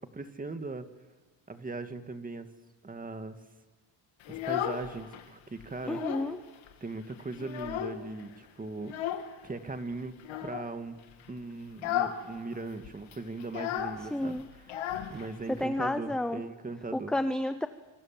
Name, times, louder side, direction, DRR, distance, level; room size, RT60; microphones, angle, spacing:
voice 1, 0.1-0.9 1.5-2.5 2.8-3.4 4.3-6.0 6.8-9.0 9.4-10.1 10.4-11.0 11.3-14.7 15.1-17.1, right 3 dB, 20° right, 8 dB, 1.9 m, -39 dB
Child speech kid speaking, 4.2-5.2 5.6-6.4 6.7-6.8 7.1-8.2 8.8-9.3 10.2-10.7 11.1-11.3 11.7-12.3 12.5-12.6 12.8-15.6, left 10 dB, 90° left, 2.5 m, -34 dB
voice 2, 5.9-6.4 14.1-14.5 15.5-16.4 16.9-17.7, left 1 dB, ahead, 10 dB, 0.8 m, -30 dB
27.0 x 25.5 x 7.5 m, 1.3 s
cardioid pair, 125°, 46 cm